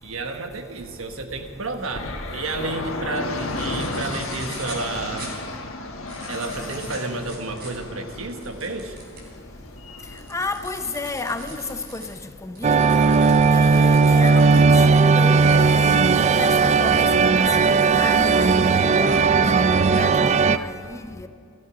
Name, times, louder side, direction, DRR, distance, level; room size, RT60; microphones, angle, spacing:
voice 1, 0.0-5.3 6.3-9.0, right 3 dB, 90° right, 1.3 m, -31 dB
sound 1, 1.9-11.8, left 2 dB, 80° left, 1.4 m, -34 dB
sound 2, 3.4-4.9 5.2-5.3 5.9-9.3 9.8-15.0 15.5-15.8 16.5-16.6 16.9-17.0 17.4-17.9 18.3-19.2 19.7-20.0, right 2 dB, 50° right, 3.6 m, -42 dB
voice 2, 10.3-13.0 13.5-21.3, left 2 dB, 15° left, 0.6 m, -32 dB
sound 3, 12.6-20.6, right 4 dB, 35° right, 0.4 m, -17 dB
15.5 x 13.5 x 5.1 m
head